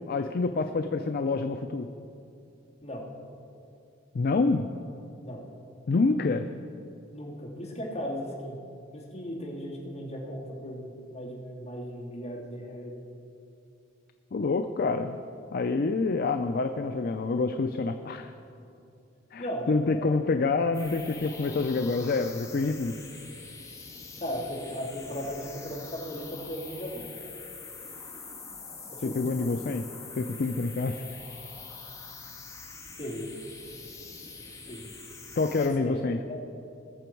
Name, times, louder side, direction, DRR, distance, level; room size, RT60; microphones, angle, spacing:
voice 1, 0.1-1.9 4.1-4.7 5.9-6.4 14.3-15.2 15.5-18.3 19.3-22.9 29.0-29.9 30.2-31.0 35.4-36.2, left 3 dB, 50° left, 7 dB, 0.4 m, -27 dB
voice 2, 7.1-8.6 8.9-13.0 19.4-20.1 24.2-27.0 29.0-29.5 33.0-33.3 34.7-34.9 35.5-36.0 36.3-36.4, equal, 35° left, -5 dB, 2.6 m, -36 dB
sound 1, 20.7-35.7, left 4 dB, 15° left, 1.7 m, -44 dB
20.5 x 7.0 x 4.6 m, 2.6 s
head